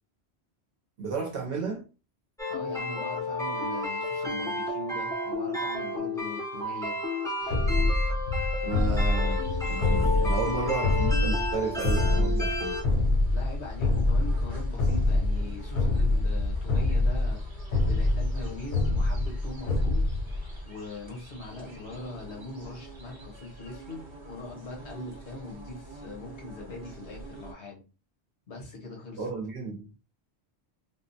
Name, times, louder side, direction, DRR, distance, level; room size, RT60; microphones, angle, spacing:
voice 1, 1.0-1.9 8.6-12.8 29.2-29.9, right 4 dB, 65° right, 0.8 m, -33 dB
sound 1, 2.4-12.8, left 2 dB, 5° left, 0.4 m, -32 dB
voice 2, 2.5-7.0 13.3-17.4 17.8-20.1 20.6-27.8 28.5-29.3, left 2 dB, 85° left, 1.3 m, -41 dB
sound 2, 7.5-20.6, left 2 dB, 55° left, 0.7 m, -26 dB
sound 3, 8.8-27.5, right 2 dB, 30° right, 0.7 m, -47 dB
3.5 x 2.0 x 2.6 m
omnidirectional pair, 1.1 m